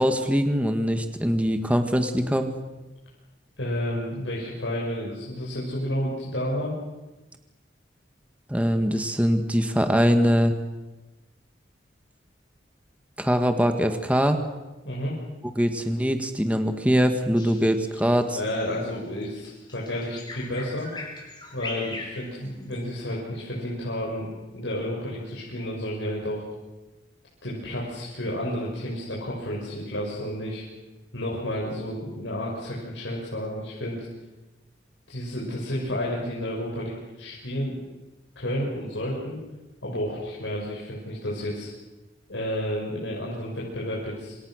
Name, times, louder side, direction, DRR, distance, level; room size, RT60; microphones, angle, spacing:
voice 1, 0.0-2.5 8.5-10.5 13.2-14.4 15.6-18.4, equal, 5° right, 6 dB, 1.7 m, -22 dB
voice 2, 3.6-6.8 14.8-15.1 18.4-20.9 21.5-24.3 24.5-26.4 27.4-30.6 31.1-34.1 35.1-37.8 38.3-39.4 39.8-41.7 42.3-44.4, equal, 90° left, -5 dB, 6.4 m, -31 dB
Bird vocalization bird call bird song, 17.4-22.9, left 2 dB, 25° left, 5.4 m, -40 dB
27.5 x 26.5 x 6.5 m, 1.1 s
head